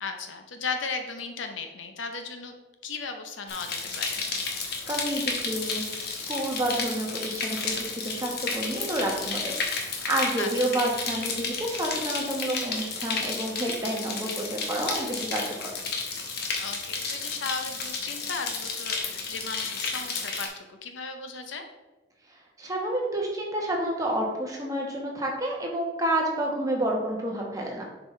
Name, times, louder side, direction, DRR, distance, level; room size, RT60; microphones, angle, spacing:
voice 1, 0.0-2.5 2.8-4.2 10.3-10.5 16.6-21.6, left 4 dB, 75° left, 6 dB, 0.7 m, -36 dB
sound 1, 3.5-20.5, left 4 dB, 50° left, 1.0 m, -32 dB
voice 2, 4.5-15.7 22.3-27.9, right 1 dB, 15° right, -1 dB, 1.1 m, -30 dB
7.2 x 5.1 x 3.2 m, 1.1 s
head